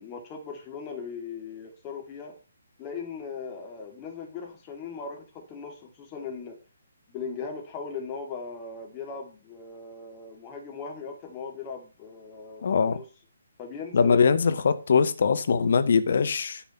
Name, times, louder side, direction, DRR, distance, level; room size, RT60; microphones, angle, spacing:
voice 1, 0.0-2.4 2.8-6.6 7.1-13.0 13.6-14.3, left 5 dB, 20° left, 2.8 m, -39 dB
voice 2, 12.6-13.0 13.9-16.6, left 5 dB, 50° left, 1.0 m, -22 dB
10.0 x 6.1 x 5.7 m
figure-of-eight pair, 140°, 0 cm